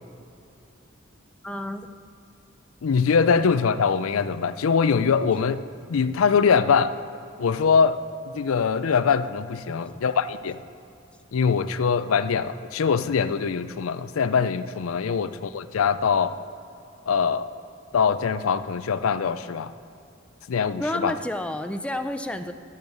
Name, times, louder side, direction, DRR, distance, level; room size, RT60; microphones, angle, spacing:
voice 1, 1.4-1.9 9.7-10.0 20.8-22.5, left 1 dB, 5° left, 7 dB, 0.4 m, -31 dB
voice 2, 2.8-5.6 5.9-6.9 7.4-8.0 8.3-10.6 11.3-16.4 17.1-17.5 17.9-19.7 20.5-21.1, left 6 dB, 85° left, 13 dB, 0.5 m, -23 dB
10.5 x 7.9 x 6.7 m, 2.7 s
head